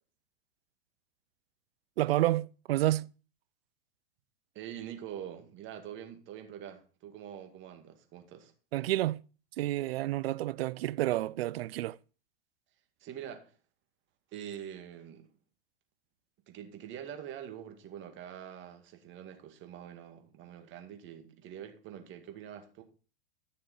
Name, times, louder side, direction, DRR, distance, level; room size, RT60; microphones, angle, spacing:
voice 1, 2.0-3.1 8.7-9.2 9.6-12.0, right 15 dB, 70° right, 0.5 m, -29 dB
voice 2, 4.5-8.5 13.0-13.6 14.3-15.3 16.5-22.8, right 9 dB, 40° right, 2.1 m, -45 dB
12.5 x 6.6 x 4.4 m
hypercardioid pair, 105°, 31 cm